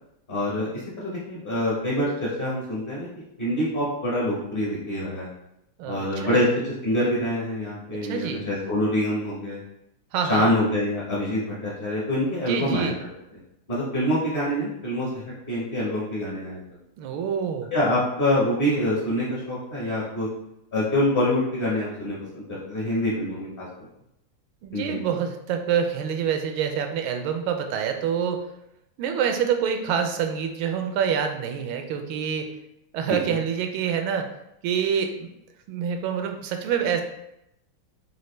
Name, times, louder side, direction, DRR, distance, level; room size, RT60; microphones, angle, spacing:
voice 1, 0.3-5.3 5.8-9.6 10.3-13.1 13.7-16.6 17.7-20.3 20.7-23.7 24.7-25.0 33.1-33.4, left 1 dB, 35° left, -6 dB, 0.9 m, -26 dB
voice 2, 5.8-6.4 8.0-8.4 10.1-10.5 12.5-12.9 17.0-17.7 24.6-28.5 29.0-32.5 32.9-34.3 34.6-35.3 35.7-37.0, right 7 dB, 85° right, 5 dB, 1.4 m, -26 dB
5.2 x 2.4 x 3.1 m, 0.83 s
omnidirectional pair, 2.2 m